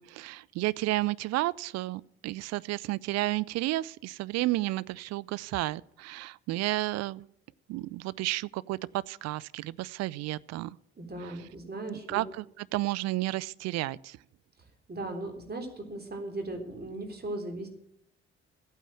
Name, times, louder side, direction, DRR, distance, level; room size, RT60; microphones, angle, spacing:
voice 1, 0.0-7.2 7.7-10.8 11.9-14.2, right 18 dB, 50° right, 20 dB, 0.5 m, -32 dB
voice 2, 11.0-12.2 14.9-17.7, right 2 dB, 25° right, 4 dB, 3.4 m, -37 dB
14.5 x 9.1 x 7.5 m, 0.76 s
figure-of-eight pair, 45°, 35 cm